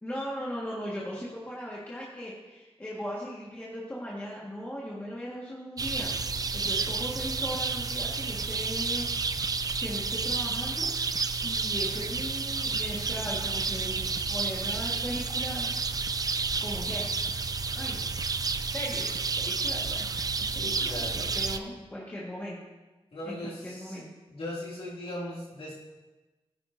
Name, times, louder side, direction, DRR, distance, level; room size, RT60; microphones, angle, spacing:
voice 1, 0.0-6.1 6.5-9.1 9.8-10.9 11.4-15.9 16.6-17.1 17.7-18.1 18.7-20.1 20.4-22.6 23.2-24.1, equal, 15° left, -6 dB, 1.6 m, -38 dB
sound 1, 5.8-21.6, right 4 dB, 35° right, 0.4 m, -30 dB
voice 2, 20.5-21.3 23.1-24.0 24.3-25.7, left 1 dB, 65° left, -6 dB, 2.5 m, -39 dB
17.0 x 10.0 x 2.7 m, 1.2 s
wide cardioid pair, 160°, 10 cm